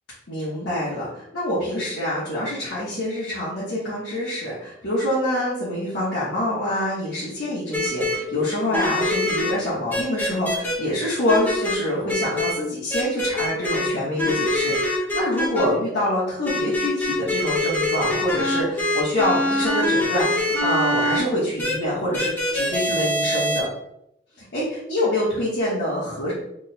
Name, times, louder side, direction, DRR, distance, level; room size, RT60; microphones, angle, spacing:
voice 1, 0.3-23.7 24.4-26.3, left 1 dB, 75° left, -10 dB, 1.2 m, -26 dB
sound 1, 7.7-8.1 8.7-9.5 9.9-10.7 11.3-11.7 12.1-12.5 12.9-13.9 14.2-15.6 16.5-21.2 21.6-21.7 22.1-23.6, left 1 dB, 10° left, 0.9 m, -24 dB
3.5 x 2.2 x 4.1 m, 0.79 s
head